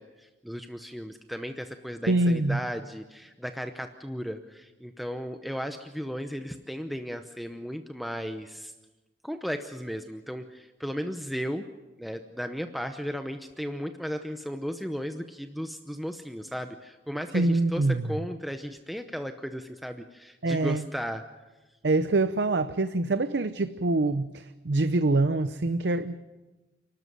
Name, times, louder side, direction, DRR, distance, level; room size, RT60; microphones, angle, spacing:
voice 1, 0.0-8.7 9.2-11.6 12.0-21.2, equal, ahead, 6 dB, 0.7 m, -35 dB
voice 2, 2.1-2.6 17.3-18.1 20.4-20.8 21.8-26.2, right 2 dB, 80° right, 11 dB, 0.7 m, -25 dB
29.0 x 12.5 x 9.3 m, 1.2 s
head